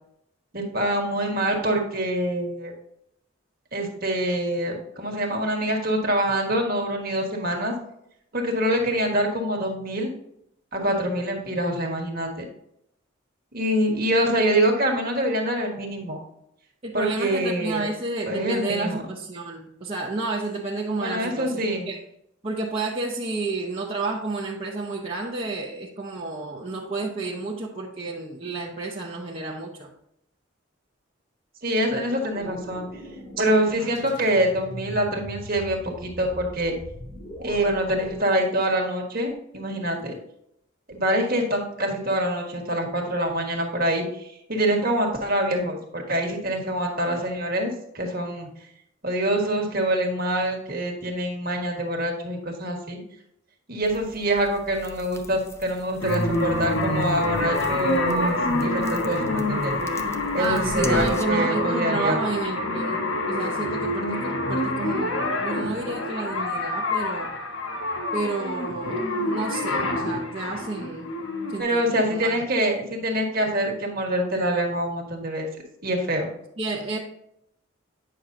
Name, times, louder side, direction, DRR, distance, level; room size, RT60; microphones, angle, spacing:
voice 1, 0.5-2.7 3.7-7.7 8.3-10.1 10.7-12.5 13.5-16.2 16.9-17.9 18.3-19.0 21.0-21.9 31.6-32.8 33.4-36.7 37.4-40.1 40.9-48.5 49.0-53.0 53.7-59.8 60.3-62.2 71.6-75.5 75.8-76.3, right 1 dB, 45° right, 1 dB, 1.5 m, -25 dB
voice 2, 16.8-22.0 22.4-29.9 60.4-67.3 68.1-71.1 71.5-72.3 76.6-77.0, right 3 dB, 30° right, -4 dB, 0.8 m, -31 dB
sound 1, 32.3-38.2, left 1 dB, 35° left, 2.0 m, -40 dB
sound 2, 53.8-61.2, left 2 dB, 15° left, 0.4 m, -37 dB
sound 3, 56.0-71.6, left 1 dB, 75° left, 1.0 m, -27 dB
8.9 x 6.3 x 2.7 m, 0.75 s
head